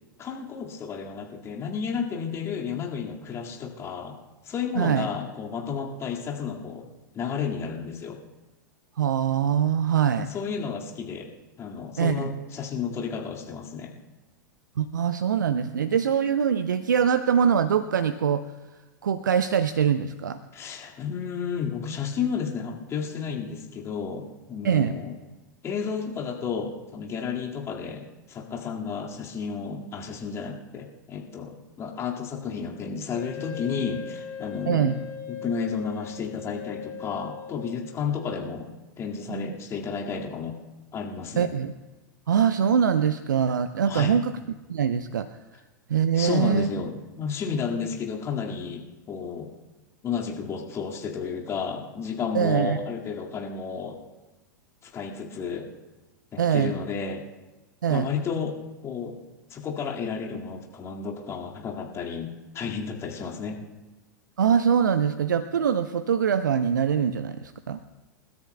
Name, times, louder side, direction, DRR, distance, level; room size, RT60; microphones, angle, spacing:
voice 1, 0.2-4.2 4.4-6.9 7.1-8.2 10.2-11.3 11.6-13.9 20.5-25.1 25.6-35.0 35.3-40.6 40.9-41.5 43.9-44.3 46.1-49.5 50.0-54.0 54.8-55.7 56.3-57.2 57.9-59.2 59.5-63.6, left 6 dB, 25° left, -1 dB, 2.0 m, -32 dB
voice 2, 4.8-5.1 9.0-10.3 12.0-12.2 14.8-18.5 19.0-20.4 24.6-24.9 34.7-35.0 39.3-39.5 41.4-41.7 42.3-44.3 44.7-45.3 45.9-46.7 52.3-52.8 56.4-56.7 57.8-58.1 64.4-67.8, right 8 dB, 70° right, 12 dB, 0.6 m, -23 dB
Wind instrument woodwind instrument, 33.1-38.2, left 7 dB, 50° left, 4.4 m, -39 dB
28.5 x 13.5 x 2.3 m, 1.1 s
figure-of-eight pair, 90°, 11 cm